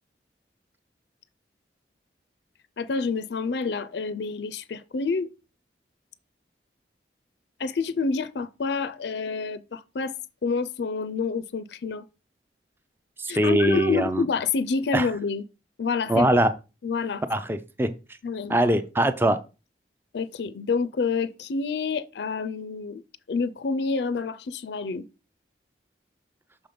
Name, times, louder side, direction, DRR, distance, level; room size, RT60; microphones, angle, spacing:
voice 1, 2.8-5.3 7.6-10.1 10.4-12.1 13.3-15.4 15.8-16.3 16.8-17.2 18.2-18.6 20.1-23.0 23.3-25.1, left 4 dB, 70° left, 0.4 m, -28 dB
voice 2, 13.2-14.2 14.9-15.1 16.1-16.5 17.3-17.9 18.5-19.4, right 1 dB, 10° right, 0.4 m, -22 dB
6.1 x 3.8 x 5.1 m
head